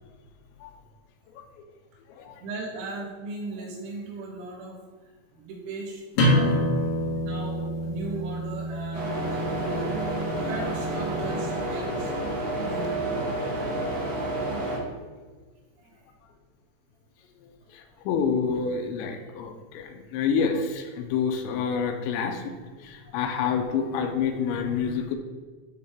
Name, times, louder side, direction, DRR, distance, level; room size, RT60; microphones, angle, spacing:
voice 1, 2.3-4.8 5.3-6.9 7.2-12.1 12.6-13.5 14.2-14.3 15.8-16.1 23.1-23.2, right 2 dB, 90° right, -1 dB, 4.0 m, -38 dB
sound 1, 6.1-11.5, equal, 60° left, 2.7 m, -27 dB
sound 2, 8.9-14.8, right 1 dB, 65° right, 1.6 m, -30 dB
voice 2, 17.7-25.2, left 6 dB, 85° left, 5 dB, 2.8 m, -28 dB
12.0 x 4.3 x 3.6 m, 1.4 s
omnidirectional pair, 5.4 m